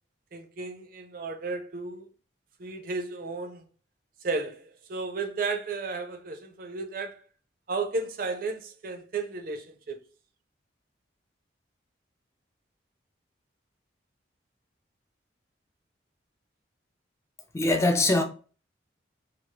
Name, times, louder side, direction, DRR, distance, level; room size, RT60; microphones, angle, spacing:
voice 1, 0.3-2.1 2.6-3.7 4.2-7.2 7.7-10.0, right 3 dB, 50° right, 0.5 m, -33 dB
voice 2, 17.5-18.2, left 2 dB, 15° left, 0.4 m, -22 dB
3.1 x 2.0 x 2.7 m
head